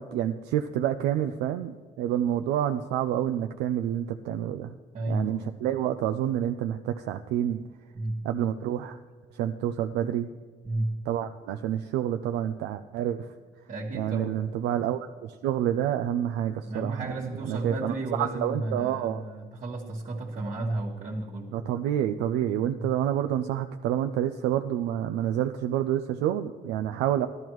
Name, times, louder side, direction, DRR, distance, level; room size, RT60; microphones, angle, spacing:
voice 1, 0.1-4.7 5.1-7.6 8.2-9.0 9.3-10.3 11.1-13.3 13.9-17.1 17.5-19.2 21.5-27.3, right 10 dB, 90° right, 7 dB, 0.4 m, -28 dB
voice 2, 4.9-5.5 7.9-8.2 10.6-11.0 13.7-14.3 16.7-21.5 22.8-22.9, right 2 dB, 40° right, -5 dB, 1.4 m, -32 dB
14.5 x 12.0 x 3.1 m, 1.5 s
cardioid pair, 110°, 17 cm